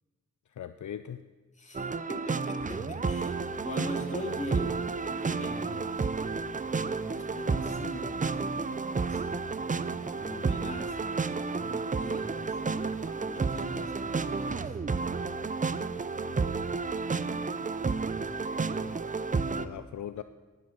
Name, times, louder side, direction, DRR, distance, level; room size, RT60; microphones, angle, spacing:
voice 1, 0.6-1.2 18.8-19.2 19.5-20.2, left 10 dB, 65° left, 11 dB, 0.5 m, -40 dB
voice 2, 1.5-4.8 5.2-6.1 6.9-9.2 10.1-11.0 11.5-12.6 13.0-14.7, left 1 dB, 20° left, 1 dB, 2.5 m, -42 dB
sound 1, 1.7-19.7, right 4 dB, 25° right, 0.5 m, -31 dB
20.0 x 7.6 x 7.1 m, 1.4 s
wide cardioid pair, 160°, 32 cm